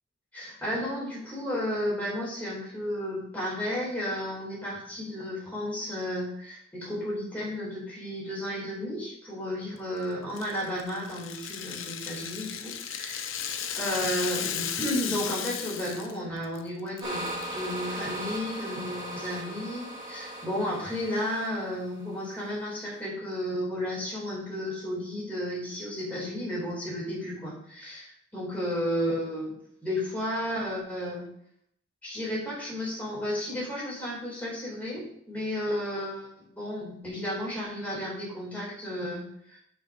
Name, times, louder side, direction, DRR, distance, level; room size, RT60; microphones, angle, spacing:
voice 1, 0.3-13.3 13.8-29.5 29.8-31.2 32.0-36.3 36.6-39.6, equal, 5° left, -6 dB, 4.0 m, -33 dB
Rattle (instrument), 10.4-16.2 16.4-16.6 17.0-17.4, left 8 dB, 75° left, 0.8 m, -35 dB
sound 1, 17.0-22.5, right 1 dB, 20° right, 2.0 m, -38 dB
7.2 x 6.2 x 5.1 m, 0.73 s
head